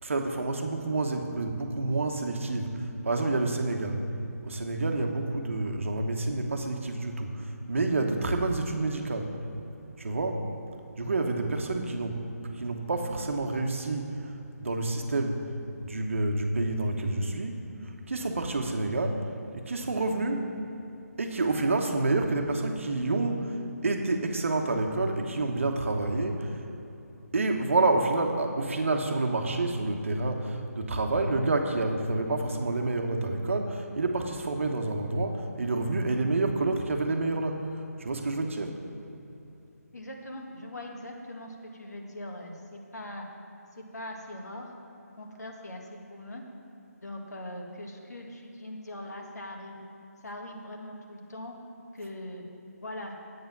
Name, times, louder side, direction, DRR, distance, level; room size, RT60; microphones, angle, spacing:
voice 1, 0.0-4.0 4.4-9.3 10.0-10.5 11.0-12.2 12.5-14.3 14.6-15.5 15.8-20.4 21.2-26.7 27.3-38.8, right 2 dB, 50° right, 4 dB, 1.1 m, -28 dB
voice 2, 39.9-43.3 43.8-44.7 45.2-45.8 46.1-46.4 47.0-49.8 50.2-51.5 51.9-52.4 52.8-53.1, left 1 dB, 80° left, 1 dB, 1.9 m, -41 dB
9.5 x 8.5 x 5.9 m, 2.9 s
hypercardioid pair, 170°, 9 cm